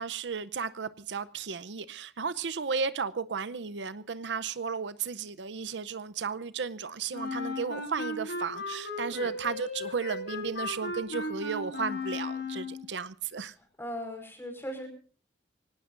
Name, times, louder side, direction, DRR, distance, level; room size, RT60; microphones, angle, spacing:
voice 1, 0.0-13.5, right 5 dB, 75° right, 16 dB, 0.7 m, -34 dB
Wind instrument woodwind instrument, 7.1-12.9, left 3 dB, 65° left, 3.9 m, -36 dB
voice 2, 13.8-14.9, equal, 15° left, 5 dB, 4.8 m, -38 dB
24.5 x 18.5 x 2.6 m, 0.39 s
head